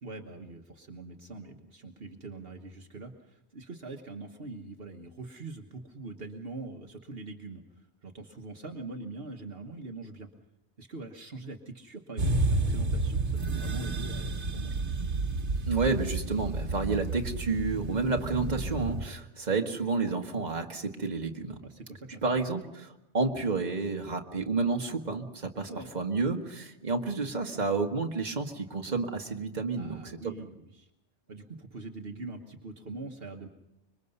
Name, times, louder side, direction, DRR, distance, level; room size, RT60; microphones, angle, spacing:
voice 1, 0.0-10.3 10.8-15.1 21.3-22.4 25.7-25.9 29.8-30.9 31.3-33.5, right 3 dB, 60° right, 3 dB, 1.5 m, -43 dB
sound 1, 12.2-19.1, right 2 dB, 85° right, 1.6 m, -31 dB
voice 2, 15.7-21.6 22.2-30.3, right 4 dB, 40° right, 3 dB, 1.7 m, -30 dB
25.5 x 23.0 x 5.5 m, 0.87 s
omnidirectional pair, 1.1 m